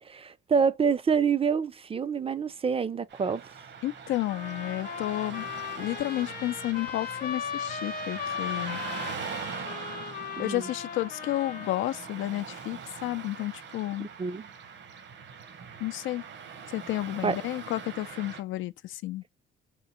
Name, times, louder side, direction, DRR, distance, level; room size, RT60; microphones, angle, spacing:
voice 1, 0.0-3.4 10.4-10.7 14.2-14.5 17.2-17.4, right 6 dB, 30° right, 0.4 m, -27 dB
Car passing by / Traffic noise roadway noise, 3.1-18.4, right 6 dB, 60° right, 1.0 m, -42 dB
voice 2, 3.8-5.4 5.8-8.8 10.4-14.1 15.8-16.2 16.7-19.2, left 16 dB, 80° left, 0.4 m, -31 dB
sound 1, 4.3-12.1, left 7 dB, 50° left, 0.8 m, -37 dB
3.8 x 2.5 x 4.2 m
cardioid pair, 90°, 20 cm